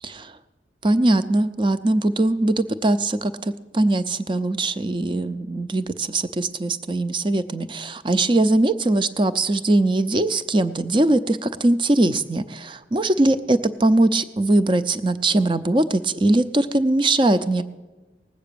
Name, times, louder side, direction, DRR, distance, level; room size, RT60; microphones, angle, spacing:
voice 1, 0.8-17.6, right 2 dB, 25° right, 12 dB, 0.5 m, -21 dB
18.5 x 8.2 x 6.8 m, 1.2 s
head